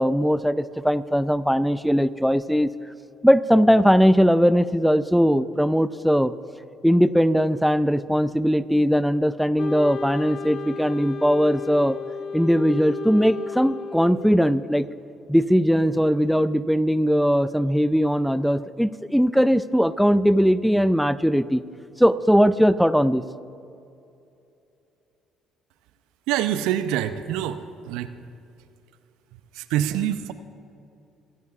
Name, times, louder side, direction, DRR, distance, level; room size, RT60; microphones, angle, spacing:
voice 1, 0.0-2.7 3.2-6.3 6.8-12.0 12.3-14.9 15.3-21.6 22.0-23.2, equal, ahead, 15 dB, 0.5 m, -20 dB
Wind instrument woodwind instrument, 9.6-14.7, left 5 dB, 55° left, 0.6 m, -34 dB
voice 2, 26.3-28.1 29.3-30.3, right 11 dB, 75° right, 11 dB, 0.6 m, -26 dB
24.0 x 15.0 x 2.4 m, 2.7 s
hypercardioid pair, 55°, 0 cm